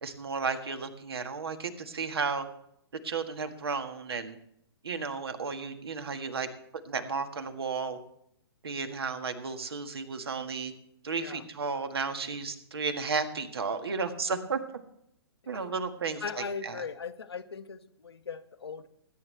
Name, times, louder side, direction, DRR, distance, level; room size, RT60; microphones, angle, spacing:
voice 1, 0.0-2.5 3.0-4.4 4.8-6.5 6.8-8.0 8.6-10.7 11.0-14.6 15.5-16.8, right 5 dB, 70° right, 8 dB, 1.7 m, -33 dB
voice 2, 16.2-18.9, left 5 dB, 75° left, 9 dB, 1.1 m, -39 dB
20.5 x 9.6 x 3.3 m, 0.72 s
figure-of-eight pair, 120°, 14 cm